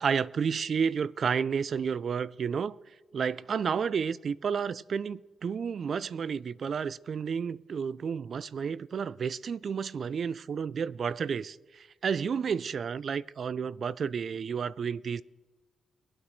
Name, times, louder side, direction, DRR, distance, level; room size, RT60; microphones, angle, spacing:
voice 1, 0.0-2.8 3.1-15.2, right 6 dB, 60° right, 0.3 m, -31 dB
22.0 x 8.6 x 3.1 m
cardioid pair, 70°, 0 cm